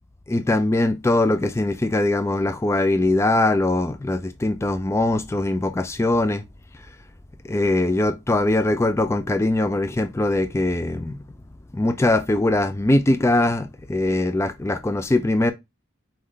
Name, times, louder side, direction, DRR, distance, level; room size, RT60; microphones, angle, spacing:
voice 1, 0.3-6.4 7.5-11.2 11.7-15.5, left 2 dB, 15° left, 0.3 m, -21 dB
4.3 x 3.2 x 3.7 m
head